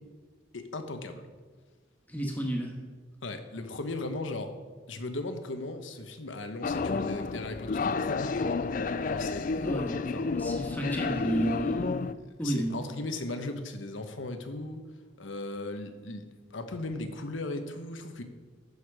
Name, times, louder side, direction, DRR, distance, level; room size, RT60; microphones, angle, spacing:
voice 1, 0.5-1.3 3.2-4.5 4.9-10.3 12.2-14.8 15.2-16.2 16.5-18.2, left 2 dB, 85° left, 7 dB, 1.1 m, -37 dB
voice 2, 2.1-2.8 9.6-12.0 12.4-12.8, right 1 dB, 10° left, 0 dB, 1.7 m, -32 dB
sound 1, 6.6-12.1, left 4 dB, 45° left, 0.3 m, -30 dB
15.5 x 6.6 x 4.9 m, 1.4 s
head